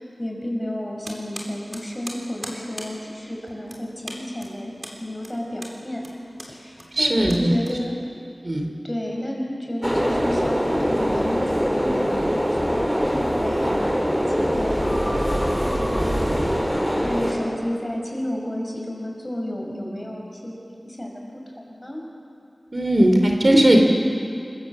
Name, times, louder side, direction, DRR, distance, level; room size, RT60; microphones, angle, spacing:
voice 1, 0.0-4.7 5.0-6.0 6.5-8.0 8.6-16.2 17.0-22.0, left 1 dB, 20° left, -1 dB, 5.7 m, -31 dB
sound 1, 1.0-8.2, equal, 20° right, 3.7 m, -40 dB
voice 2, 6.9-7.5 8.4-8.7 22.7-23.8, right 1 dB, 50° right, 2 dB, 2.8 m, -18 dB
sound 2, 9.8-17.3, equal, 5° right, 4.5 m, -23 dB
27.0 x 15.5 x 7.4 m, 2.5 s
wide cardioid pair, 55°, 0 cm